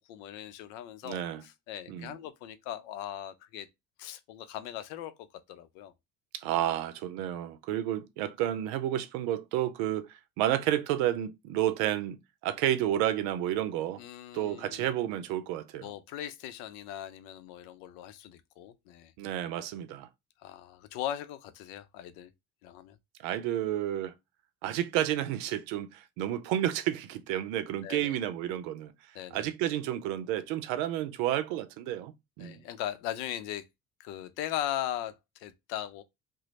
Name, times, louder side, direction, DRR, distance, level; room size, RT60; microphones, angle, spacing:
voice 1, 0.1-3.7 4.0-5.9 14.0-14.9 15.8-19.1 20.4-22.3 22.6-23.0 27.8-28.2 29.1-29.5 32.4-33.7 34.0-36.0, left 11 dB, 80° left, 0.6 m, -39 dB
voice 2, 1.0-1.4 1.9-2.1 6.3-12.2 12.4-14.0 14.3-15.9 19.2-20.1 23.2-24.1 24.6-28.9 29.3-32.6, right 12 dB, 85° right, 0.6 m, -31 dB
3.0 x 2.0 x 4.0 m
hypercardioid pair, 65°, 40 cm